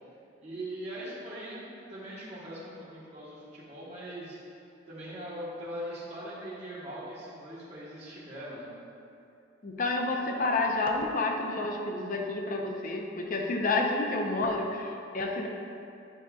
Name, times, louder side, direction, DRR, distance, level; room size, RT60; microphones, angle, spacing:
voice 1, 0.4-4.4 4.9-8.7, right 1 dB, 35° right, -10 dB, 1.3 m, -41 dB
voice 2, 9.6-15.5, left 2 dB, 50° left, 1 dB, 0.6 m, -29 dB
9.0 x 5.2 x 2.3 m, 2.6 s
head